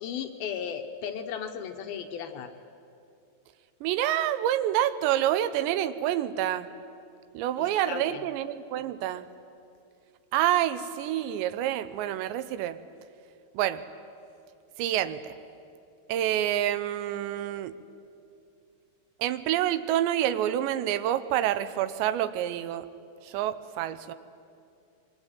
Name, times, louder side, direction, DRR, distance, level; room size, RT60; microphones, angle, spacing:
voice 1, 0.0-2.5 7.6-8.2, left 8 dB, 70° left, 7 dB, 2.6 m, -35 dB
voice 2, 3.8-6.7 7.3-9.3 10.3-12.8 13.5-13.8 14.8-15.3 16.1-17.7 19.2-22.9 23.2-24.1, right 12 dB, 85° right, 13 dB, 3.1 m, -27 dB
26.0 x 23.5 x 9.2 m, 2.5 s
omnidirectional pair, 5.0 m